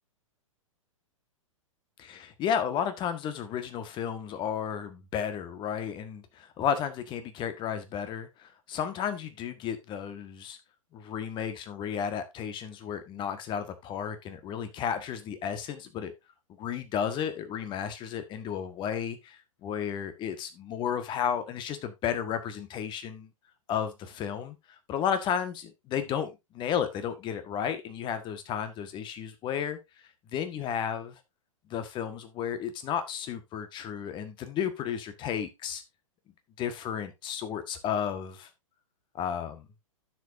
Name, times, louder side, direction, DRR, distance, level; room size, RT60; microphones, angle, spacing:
voice 1, 2.0-10.6 10.9-16.1 16.6-23.3 23.7-29.8 30.3-31.2 31.7-35.8 36.6-38.5 39.1-39.7, left 8 dB, 25° left, 1.6 m, -33 dB
10.0 x 7.4 x 2.7 m
figure-of-eight pair, 110°, 18 cm